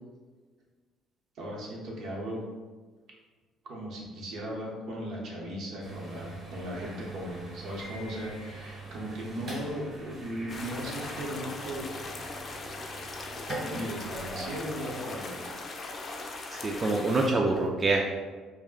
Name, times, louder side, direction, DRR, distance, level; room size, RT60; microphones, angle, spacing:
voice 1, 1.3-2.4 3.7-11.9 13.7-15.3, equal, 70° right, -3 dB, 0.8 m, -37 dB
sound 1, 5.8-15.0, right 2 dB, 50° right, 1.1 m, -43 dB
sound 2, 10.5-17.3, left 3 dB, 45° left, 0.4 m, -39 dB
voice 2, 16.5-18.1, right 2 dB, 30° right, 0 dB, 0.3 m, -26 dB
2.3 x 2.0 x 3.8 m, 1.4 s
supercardioid pair, 80°, 0 cm